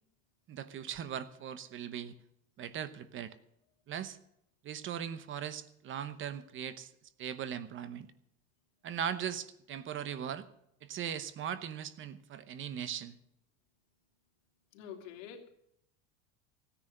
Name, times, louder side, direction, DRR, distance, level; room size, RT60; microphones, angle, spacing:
voice 1, 0.5-2.1 2.6-3.4 3.9-4.2 4.6-6.9 7.2-8.1 8.8-10.5 10.8-13.2, right 9 dB, 30° right, 14 dB, 0.9 m, -39 dB
voice 2, 14.7-15.5, left 8 dB, 90° left, 3 dB, 2.9 m, -46 dB
16.5 x 10.0 x 6.6 m, 0.77 s
cardioid pair, 150°, 37 cm